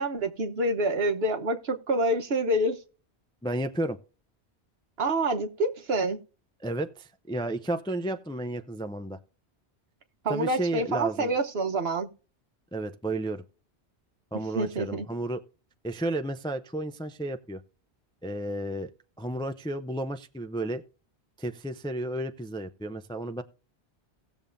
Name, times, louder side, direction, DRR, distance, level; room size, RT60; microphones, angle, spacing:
voice 1, 0.0-2.8 5.0-6.2 10.2-12.1 14.5-15.1, right 1 dB, 65° right, 1.3 m, -27 dB
voice 2, 3.4-4.0 6.6-9.2 10.3-11.3 12.7-13.4 14.3-15.4 15.8-17.6 18.2-18.9 19.2-20.8 21.4-23.4, right 1 dB, 5° left, 0.4 m, -32 dB
17.5 x 7.0 x 2.6 m
omnidirectional pair, 1.1 m